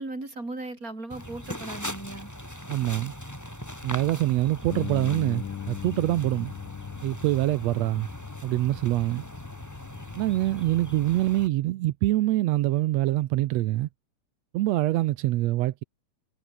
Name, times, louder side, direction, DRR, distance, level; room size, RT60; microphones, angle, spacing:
voice 1, 0.0-2.3, right 2 dB, 25° right, 6.6 m, -37 dB
sound 1, 1.1-11.5, equal, 5° left, 6.9 m, -40 dB
voice 2, 2.7-3.1 3.8-6.5 7.0-8.1 8.4-9.2 10.1-13.9 14.5-15.8, right 16 dB, 75° right, 1.6 m, -25 dB
Bass guitar, 4.7-11.0, left 10 dB, 80° left, 3.6 m, -39 dB
omnidirectional pair, 3.9 m